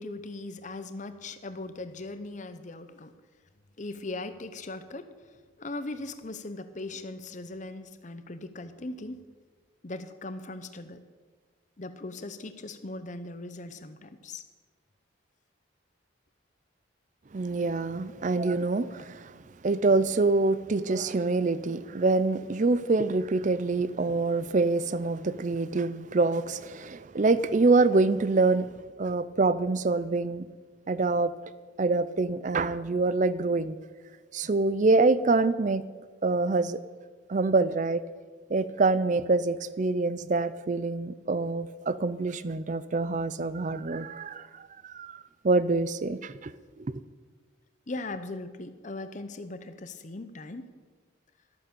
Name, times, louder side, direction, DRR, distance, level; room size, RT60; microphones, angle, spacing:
voice 1, 0.0-3.1 3.8-9.2 9.8-11.0 11.8-14.4 18.9-19.1 47.9-50.7, left 2 dB, 40° left, 0.8 m, -39 dB
voice 2, 17.3-19.3 19.6-28.7 29.0-30.5 30.9-31.3 31.8-33.8 34.3-35.8 36.2-36.8 37.3-38.0 38.5-46.5 46.8-46.9, right 3 dB, 40° right, 0.4 m, -26 dB
12.5 x 8.9 x 6.8 m
head